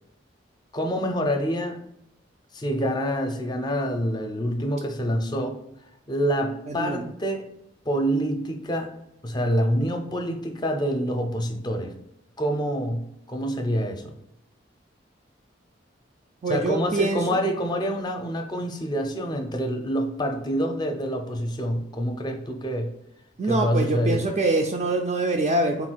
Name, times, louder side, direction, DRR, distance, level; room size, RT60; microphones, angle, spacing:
voice 1, 0.7-1.8 2.5-5.6 6.1-7.5 7.9-8.9 9.2-11.9 12.4-14.1 16.5-22.9 23.4-24.3, equal, 25° left, 4 dB, 0.5 m, -26 dB
voice 2, 6.7-7.1 16.4-17.4 23.4-25.9, right 2 dB, 35° right, 1 dB, 0.3 m, -24 dB
3.9 x 2.4 x 4.4 m, 0.80 s
head